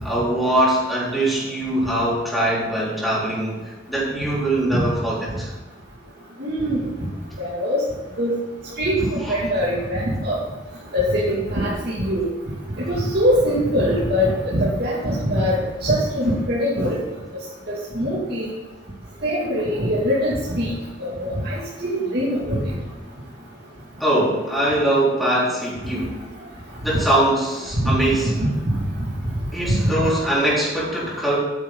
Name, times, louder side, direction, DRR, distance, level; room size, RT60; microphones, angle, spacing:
voice 1, 0.0-5.5 9.2-9.3 24.0-26.2 26.8-28.4 29.5-31.4, right 1 dB, ahead, -8 dB, 4.2 m, -22 dB
voice 2, 6.4-6.8 7.4-7.8 8.2-8.3 8.8-10.4 10.9-12.3 12.8-17.0 17.7-18.5 19.2-20.7 21.0-22.6 27.8-28.8 29.7-30.1, equal, 60° right, -8 dB, 2.6 m, -22 dB
12.0 x 9.5 x 4.0 m, 1.2 s
head